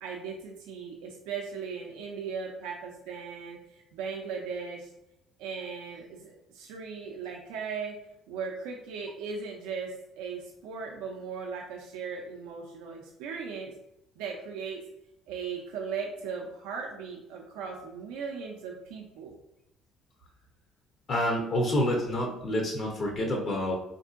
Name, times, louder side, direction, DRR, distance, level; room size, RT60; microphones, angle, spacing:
voice 1, 0.0-4.9 5.4-8.0 8.3-13.7 14.2-14.8 15.3-19.3, right 5 dB, 90° right, 0 dB, 0.4 m, -38 dB
voice 2, 21.1-23.8, left 1 dB, 50° left, 0 dB, 0.6 m, -28 dB
3.5 x 2.6 x 2.4 m, 0.84 s
supercardioid pair, 85°, 0 cm